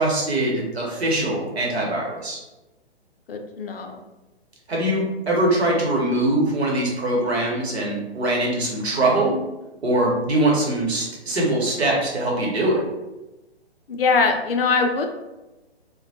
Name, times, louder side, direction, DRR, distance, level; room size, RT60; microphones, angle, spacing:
voice 1, 0.0-2.4 4.7-9.4 9.8-12.8, right 1 dB, 75° right, -2 dB, 1.0 m, -22 dB
voice 2, 3.3-4.0 13.9-15.1, left 4 dB, 60° left, 4 dB, 0.5 m, -22 dB
2.2 x 2.1 x 2.7 m, 1.0 s
figure-of-eight pair, 135°, 32 cm